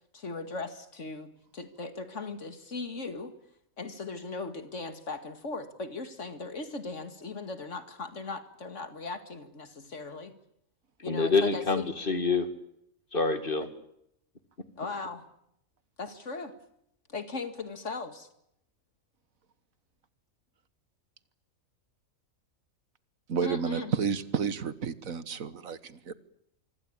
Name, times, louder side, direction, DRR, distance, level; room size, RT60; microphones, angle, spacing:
voice 1, 0.1-3.3 3.8-10.4 11.0-11.9 13.6-13.8 14.8-15.2 16.0-16.5 17.1-18.3 23.4-23.9, left 3 dB, 60° left, 9 dB, 2.5 m, -38 dB
voice 2, 11.0-12.5 13.1-13.7, left 4 dB, 40° left, 10 dB, 2.4 m, -26 dB
voice 3, 23.3-26.1, right 6 dB, 85° right, 14 dB, 1.8 m, -31 dB
25.0 x 25.0 x 8.8 m, 0.77 s
omnidirectional pair, 1.4 m